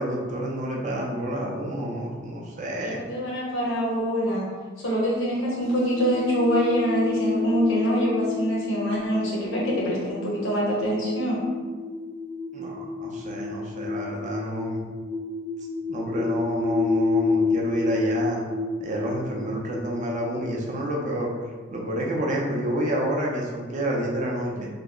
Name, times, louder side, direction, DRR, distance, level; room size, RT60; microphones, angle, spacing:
voice 1, 0.0-3.0 12.5-14.8 15.9-18.4 18.8-21.3 21.7-24.7, right 1 dB, 35° right, -2 dB, 0.5 m, -29 dB
voice 2, 2.8-4.5 4.8-11.4, equal, 75° left, -4 dB, 1.0 m, -25 dB
sound 1, 5.6-21.9, left 4 dB, 35° left, 0.6 m, -30 dB
3.2 x 2.0 x 3.6 m, 1.4 s
head